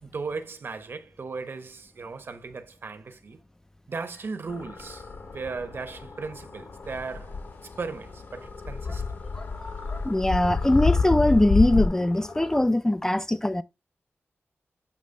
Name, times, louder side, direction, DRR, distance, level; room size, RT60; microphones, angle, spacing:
voice 1, 0.0-3.4 3.9-5.0 5.3-7.3 7.8-9.0, right 4 dB, 55° right, 0.9 m, -36 dB
sound 1, 4.5-12.7, left 4 dB, 65° left, 1.2 m, -43 dB
sound 2, 6.9-7.4 8.5-11.9, left 4 dB, 50° left, 0.7 m, -26 dB
voice 2, 9.6-13.6, left 1 dB, 10° left, 0.3 m, -22 dB
8.2 x 3.0 x 5.2 m
wide cardioid pair, 115°, 4 cm